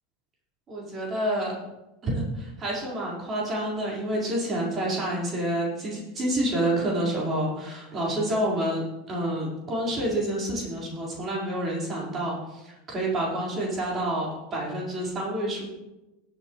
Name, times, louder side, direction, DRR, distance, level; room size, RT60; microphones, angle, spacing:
voice 1, 0.7-1.5 2.0-15.6, right 1 dB, 30° right, -4 dB, 5.0 m, -28 dB
20.5 x 7.7 x 3.3 m, 1.0 s
figure-of-eight pair, 80°, 0 cm